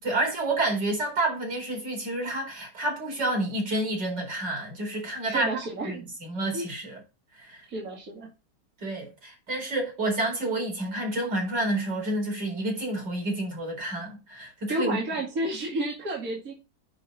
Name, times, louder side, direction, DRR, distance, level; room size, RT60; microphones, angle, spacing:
voice 1, 0.0-5.5 5.9-7.0 7.4-7.6 8.8-15.0, right 2 dB, 85° right, 5.1 m, -29 dB
voice 2, 5.3-6.0 6.5-6.7 7.7-8.3 14.7-16.5, right 2 dB, 55° right, 2.6 m, -31 dB
9.9 x 5.6 x 4.1 m
omnidirectional pair, 1.9 m